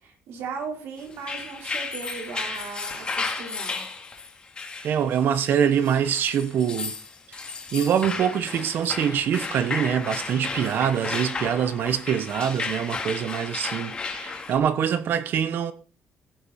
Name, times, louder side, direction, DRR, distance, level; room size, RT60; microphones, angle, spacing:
voice 1, 0.0-3.8, right 5 dB, 80° right, 4.3 m, -37 dB
sound 1, 1.1-14.6, left 4 dB, 25° left, 2.1 m, -33 dB
voice 2, 4.8-6.9 7.3-7.4 7.7-15.7, right 8 dB, 55° right, 1.2 m, -24 dB
16.5 x 8.5 x 4.3 m
cardioid pair, 170°, 4 cm